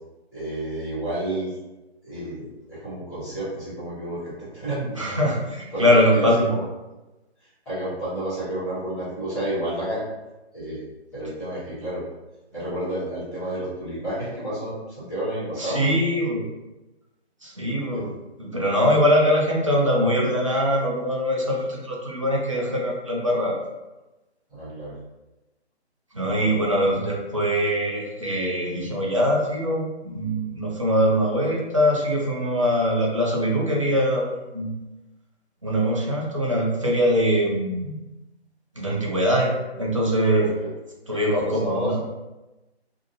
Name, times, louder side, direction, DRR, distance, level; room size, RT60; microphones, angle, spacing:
voice 1, 0.3-1.5 2.0-5.0 5.7-6.7 7.4-10.0 10.5-10.8 11.1-12.1 12.5-16.5 17.9-18.0 24.5-25.0 26.2-26.6 40.3-40.7 41.0-42.0, right 1 dB, 5° left, -17 dB, 0.7 m, -31 dB
voice 2, 5.0-6.5 15.6-16.4 17.4-18.1 18.4-23.6 26.1-34.7 35.6-38.0 38.8-39.5 39.8-40.5 41.1-42.0, equal, 30° right, -3 dB, 0.4 m, -22 dB
2.7 x 2.4 x 2.4 m, 1.0 s
figure-of-eight pair, 140°, 33 cm